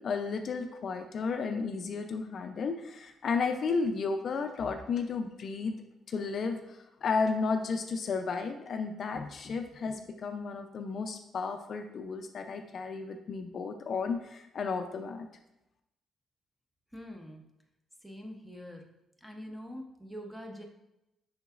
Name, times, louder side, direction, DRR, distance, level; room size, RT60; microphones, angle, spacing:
voice 1, 0.0-5.8 6.1-15.3, left 4 dB, 55° left, 6 dB, 0.4 m, -33 dB
voice 2, 16.9-17.4 18.0-18.9 19.2-20.6, equal, 5° right, 2 dB, 0.7 m, -44 dB
5.7 x 3.8 x 2.4 m, 0.88 s
cardioid pair, 90°, 0 cm